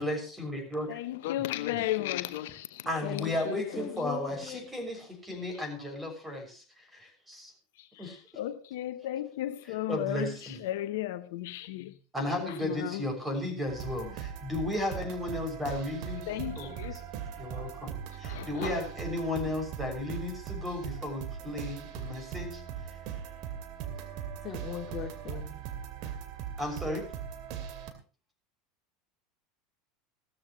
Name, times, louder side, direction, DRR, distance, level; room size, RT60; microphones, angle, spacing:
voice 1, 0.0-1.0 1.7-1.8 2.8-7.5 8.0-8.2 9.9-10.6 12.1-16.3 16.6-17.0 17.4-22.6 26.0-26.1 26.6-27.0, left 1 dB, 10° right, 6.5 m, -34 dB
voice 2, 0.9-3.9 7.8-11.9 12.4-13.0 16.3-17.0 18.2-18.8, left 14 dB, 70° left, 0.8 m, -35 dB
voice 3, 3.4-4.7 24.4-25.6, left 9 dB, 40° left, 2.3 m, -39 dB
sound 1, 13.7-27.9, right 8 dB, 55° right, 2.5 m, -40 dB
16.5 x 13.5 x 3.1 m
hypercardioid pair, 80°, 0 cm